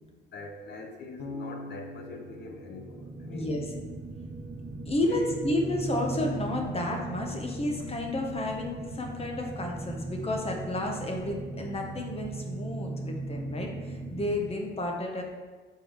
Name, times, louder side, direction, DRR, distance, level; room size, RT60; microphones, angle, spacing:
voice 1, 0.3-3.5 4.7-4.8 5.1-5.3, left 3 dB, 60° left, 4 dB, 0.9 m, -43 dB
Bass guitar, 1.2-4.2, left 2 dB, 85° left, 0.9 m, -44 dB
sound 1, 2.0-14.3, right 3 dB, 45° right, 1.0 m, -38 dB
voice 2, 3.3-3.7 4.9-15.2, left 1 dB, 30° left, 1 dB, 1.1 m, -31 dB
6.7 x 4.7 x 3.2 m, 1.4 s
cardioid pair, 90°, 20 cm